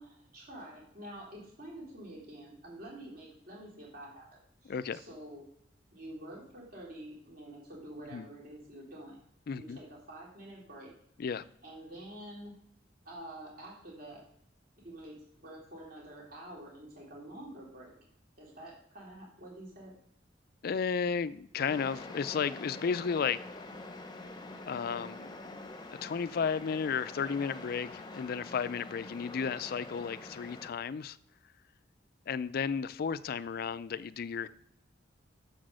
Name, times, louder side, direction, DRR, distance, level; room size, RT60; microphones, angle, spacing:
voice 1, 0.0-4.3 4.6-5.4 5.9-9.2 9.6-10.9 11.6-12.6 13.0-14.2 14.8-17.9 18.4-19.9, right 1 dB, 50° right, 2.9 m, -47 dB
voice 2, 4.7-5.0 8.1-8.3 9.5-9.8 11.2-11.4 20.6-23.4 24.7-25.3 26.0-31.2 32.3-34.5, left 6 dB, 55° left, 0.4 m, -33 dB
sound 1, 21.7-30.7, left 2 dB, 25° left, 0.8 m, -46 dB
6.8 x 6.1 x 6.3 m
head